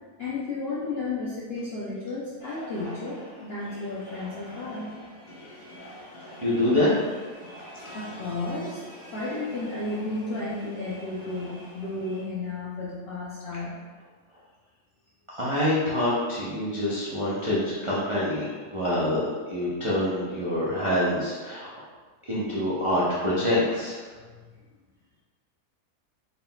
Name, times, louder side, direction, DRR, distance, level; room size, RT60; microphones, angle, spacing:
voice 1, 0.2-4.9 7.6-8.8 9.1-13.8, left 2 dB, 70° left, -7 dB, 0.5 m, -33 dB
sound 1, 2.4-12.2, equal, 45° left, 1.6 m, -45 dB
voice 2, 5.5-5.9 6.4-7.0 15.3-21.7 22.3-24.0, left 1 dB, 55° right, -9 dB, 0.3 m, -26 dB
3.9 x 3.7 x 2.2 m, 1.4 s
omnidirectional pair, 1.7 m